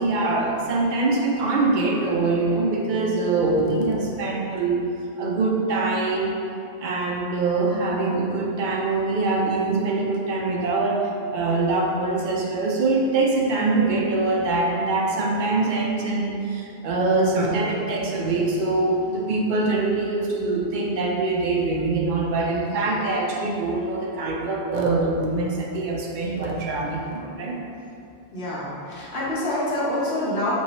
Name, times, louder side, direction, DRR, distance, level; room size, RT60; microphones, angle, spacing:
voice 1, 0.0-4.8 5.2-6.4 6.8-11.0 11.3-27.6, right 3 dB, 55° right, -1 dB, 0.6 m, -23 dB
voice 2, 28.3-30.5, left 1 dB, 65° left, -7 dB, 1.1 m, -26 dB
3.0 x 2.7 x 4.1 m, 2.6 s
omnidirectional pair, 1.1 m